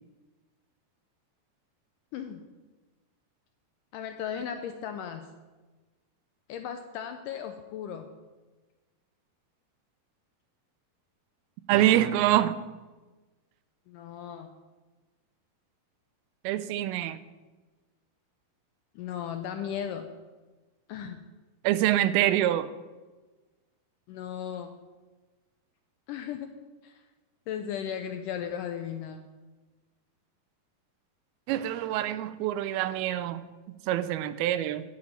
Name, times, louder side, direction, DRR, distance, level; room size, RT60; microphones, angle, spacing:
voice 1, 3.9-5.3 6.5-8.1 13.9-14.5 19.0-20.1 20.9-21.2 24.1-24.8 26.1-27.0 27.5-29.2, left 8 dB, 80° left, 6 dB, 1.9 m, -36 dB
voice 2, 11.7-12.6 16.4-17.2 21.6-22.7 31.5-33.4 33.9-34.8, right 13 dB, 85° right, 13 dB, 2.5 m, -25 dB
11.5 x 5.1 x 8.5 m, 1.3 s
omnidirectional pair, 4.3 m